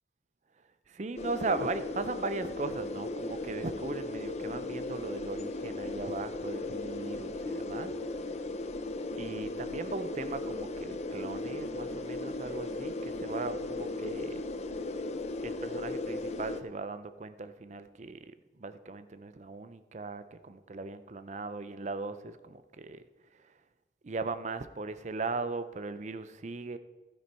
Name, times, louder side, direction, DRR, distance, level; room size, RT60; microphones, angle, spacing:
voice 1, 0.9-8.0 9.2-14.4 15.4-23.0 24.0-26.8, right 3 dB, 40° right, 12 dB, 0.5 m, -38 dB
sound 1, 1.2-16.6, left 2 dB, 40° left, 0.6 m, -37 dB
12.5 x 9.8 x 4.3 m, 1.2 s
head